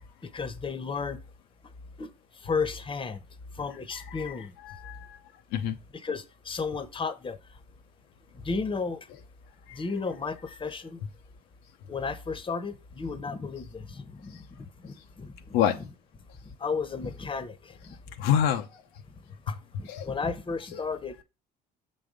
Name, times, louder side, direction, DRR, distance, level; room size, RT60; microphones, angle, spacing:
voice 1, 0.2-1.2 2.0-2.1 2.4-3.2 3.6-4.5 5.9-7.4 8.3-9.0 9.7-11.0 11.9-14.4 14.8-15.8 16.6-17.9 19.5-21.2, left 4 dB, 25° left, 1.0 m, -33 dB
voice 2, 4.7-5.2 5.5-5.8 15.5-15.7 18.2-18.7 19.9-20.1 20.7-20.8, left 9 dB, 75° left, 0.7 m, -26 dB
6.8 x 4.0 x 5.0 m
hypercardioid pair, 70°, 21 cm